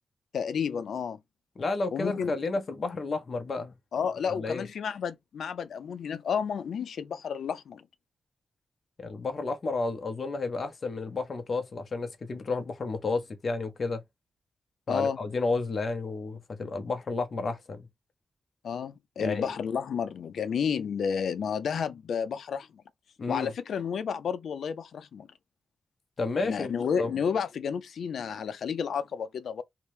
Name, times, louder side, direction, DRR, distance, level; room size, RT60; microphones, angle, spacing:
voice 1, 0.3-1.2 1.9-2.3 3.9-7.8 14.9-15.2 18.6-22.8 23.3-25.3 26.4-29.6, left 7 dB, 80° left, 0.4 m, -31 dB
voice 2, 1.6-3.8 4.4-4.7 9.0-14.0 14.9-17.8 19.2-19.5 23.2-23.5 26.2-26.7 27.0-27.2, left 3 dB, 40° left, 0.6 m, -31 dB
2.8 x 2.0 x 3.1 m
wide cardioid pair, 165°, 0 cm